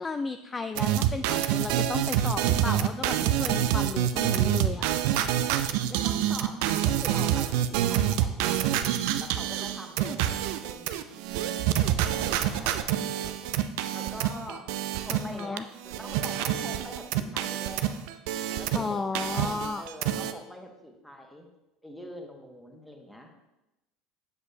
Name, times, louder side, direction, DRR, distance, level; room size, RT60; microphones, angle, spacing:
voice 1, 0.0-4.9 15.2-15.6 18.7-19.8, left 4 dB, 25° left, 9 dB, 0.3 m, -33 dB
sound 1, 0.8-15.6 15.8-18.9 19.1-20.3, right 11 dB, 65° right, 0.4 m, -27 dB
voice 2, 5.9-11.2 11.8-13.5 13.9-14.6 15.0-18.1 18.6-21.5 21.8-23.3, equal, 5° left, 2 dB, 1.3 m, -44 dB
7.7 x 6.8 x 2.7 m, 0.96 s
hypercardioid pair, 70°, 0 cm